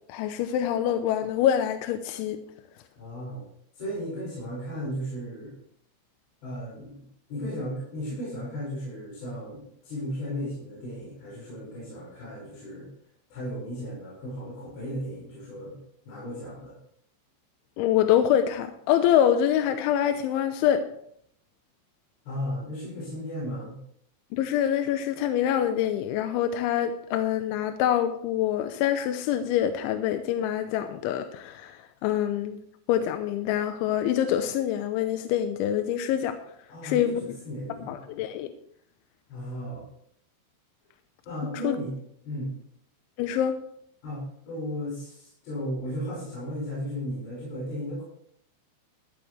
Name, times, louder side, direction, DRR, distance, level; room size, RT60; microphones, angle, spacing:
voice 1, 0.1-2.4 17.8-20.8 24.3-32.6 32.9-36.4 36.8-37.2 37.9-38.5 41.6-41.8 43.2-43.6, left 10 dB, 85° left, 8 dB, 3.1 m, -25 dB
voice 2, 3.0-3.4 3.7-5.6 6.4-7.0 7.3-12.9 13.3-15.8 16.1-16.7 22.3-23.8 36.7-38.0 39.3-39.8 41.3-41.9 42.2-42.5 44.0-48.0, equal, 65° left, -6 dB, 7.8 m, -35 dB
14.0 x 13.5 x 3.2 m, 0.67 s
omnidirectional pair, 5.4 m